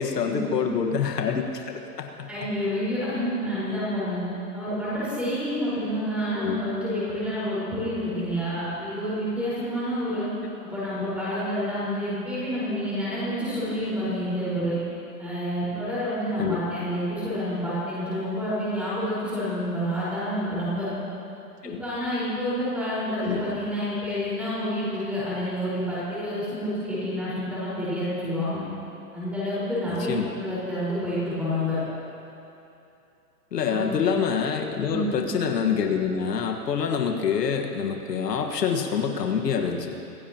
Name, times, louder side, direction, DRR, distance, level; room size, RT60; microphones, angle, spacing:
voice 1, 0.0-2.3 6.3-6.6 16.4-16.6 21.6-21.8 23.2-23.6 29.9-30.3 33.5-40.0, left 6 dB, 80° left, 3 dB, 1.7 m, -26 dB
voice 2, 2.3-4.2 4.5-10.3 10.6-14.8 15.2-20.9 21.6-28.6 29.1-30.1 30.4-31.8 33.7-34.0 34.8-35.1, equal, 5° right, -11 dB, 4.6 m, -28 dB
26.0 x 15.5 x 3.0 m, 2.7 s
hypercardioid pair, 170°, 48 cm